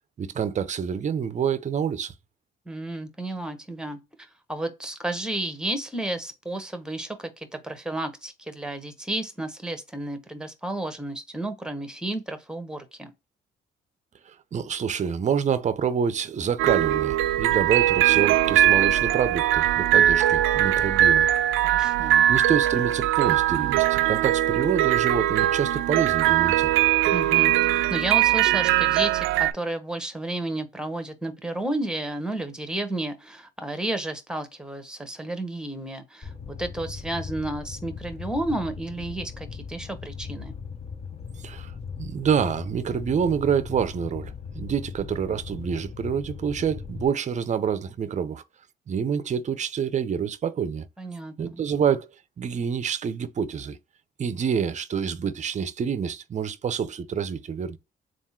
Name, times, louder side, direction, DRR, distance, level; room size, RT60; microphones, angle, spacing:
voice 1, 0.2-2.1 14.5-21.3 22.3-26.7 41.4-41.7 42.0-48.4 48.9-50.9 51.4-52.1 52.4-53.8 54.2-57.8, right 7 dB, 35° right, 0.5 m, -27 dB
voice 2, 2.7-13.1 21.6-22.2 27.1-27.5 27.9-40.6 51.0-51.6, right 1 dB, 5° right, 1.0 m, -32 dB
sound 1, 16.6-29.5, right 12 dB, 90° right, 0.4 m, -21 dB
Fire, 36.2-47.1, left 6 dB, 30° left, 0.7 m, -38 dB
3.6 x 2.5 x 4.2 m
cardioid pair, 90°, 20 cm